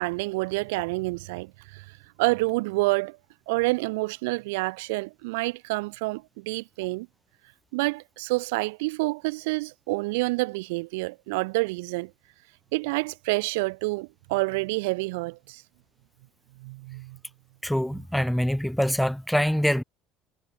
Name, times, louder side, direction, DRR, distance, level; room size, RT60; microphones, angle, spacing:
voice 1, 0.0-1.8 2.2-3.2 3.5-7.1 7.7-12.1 12.7-15.6 16.6-17.2, right 25 dB, 85° right, 3.5 m, -28 dB
voice 2, 17.6-19.8, equal, ahead, 4.2 m, -24 dB
supercardioid pair, 85°, 0 cm